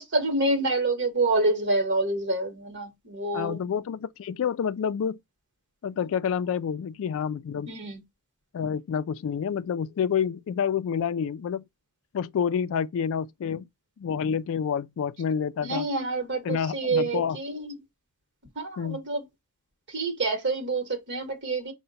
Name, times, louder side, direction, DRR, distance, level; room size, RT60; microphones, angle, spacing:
voice 1, 0.0-3.6 7.7-8.0 15.6-17.7 18.6-19.3 19.9-21.7, right 2 dB, 50° right, 1.0 m, -27 dB
voice 2, 3.3-5.2 5.8-7.7 8.5-11.6 12.1-13.7 14.0-15.9 16.4-17.4 18.8-19.0, left 7 dB, 60° left, 0.3 m, -28 dB
5.6 x 2.2 x 3.8 m
head